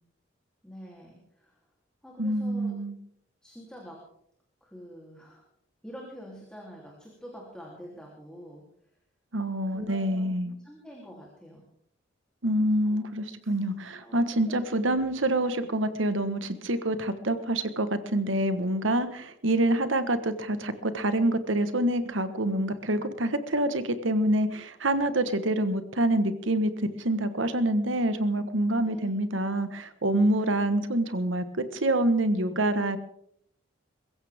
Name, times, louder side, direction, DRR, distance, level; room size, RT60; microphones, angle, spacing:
voice 1, 0.6-1.6 2.0-2.8 3.4-4.0 4.6-5.4 5.8-8.7 9.7-11.6 12.6-13.0 13.4-13.5 14.0-15.0 15.4-15.5 28.8-29.1, equal, 5° left, -2 dB, 3.2 m, -47 dB
voice 2, 2.2-2.9 9.3-10.5 12.4-26.7 27.0-33.0, right 1 dB, 80° right, 11 dB, 1.4 m, -26 dB
23.0 x 15.0 x 3.6 m, 0.71 s
head